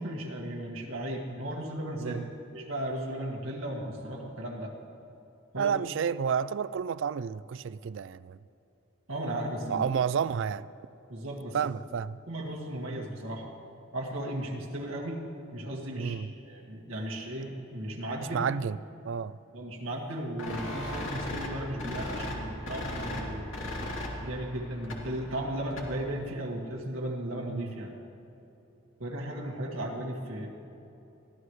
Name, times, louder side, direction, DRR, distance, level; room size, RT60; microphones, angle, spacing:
voice 1, 0.0-2.2 2.5-4.7 5.5-5.7 9.1-9.8 11.1-11.6 12.3-13.5 13.9-15.2 15.5-16.2 16.4-18.4 19.5-23.6 24.2-27.9 29.0-30.5, right 1 dB, 80° right, 2.0 m, -35 dB
voice 2, 2.0-2.3 5.6-8.4 9.7-10.7 11.5-12.2 16.0-16.3 18.3-18.8 19.0-19.4 27.5-27.7, right 7 dB, 65° right, 0.4 m, -30 dB
sound 1, 20.4-26.1, left 1 dB, 75° left, 2.6 m, -37 dB
24.0 x 15.5 x 3.2 m
head